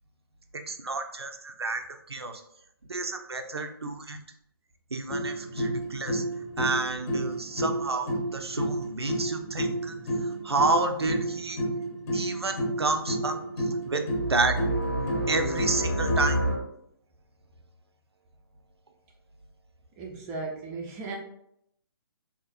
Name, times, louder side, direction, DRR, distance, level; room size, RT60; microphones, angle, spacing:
voice 1, 0.7-2.4 2.9-4.2 4.9-6.2 6.6-9.9 10.2-11.6 12.1-13.4 13.9-14.0 14.3-14.6 15.3-16.4, right 3 dB, 90° right, 6 dB, 0.5 m, -30 dB
sound 1, 5.1-16.5, right 1 dB, 35° left, 0.7 m, -30 dB
voice 2, 20.0-21.2, right 3 dB, 15° right, -1 dB, 0.3 m, -36 dB
3.7 x 2.5 x 2.2 m, 0.75 s
figure-of-eight pair, 135°, 13 cm